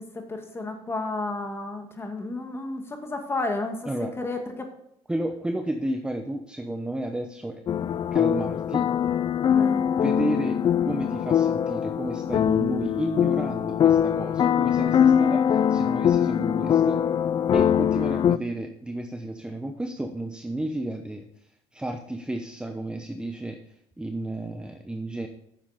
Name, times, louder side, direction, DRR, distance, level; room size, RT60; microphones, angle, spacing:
voice 1, 0.0-4.7 9.5-9.9, left 2 dB, 20° left, 4 dB, 2.1 m, -32 dB
voice 2, 5.1-7.6 8.1-8.9 10.0-10.6 10.8-17.0 17.5-21.2 21.7-23.6 24.0-25.3, right 1 dB, 10° right, 5 dB, 0.8 m, -32 dB
sound 1, 7.7-18.4, left 9 dB, 40° left, 0.4 m, -22 dB
9.4 x 7.1 x 5.1 m, 0.74 s
supercardioid pair, 90°, 11 cm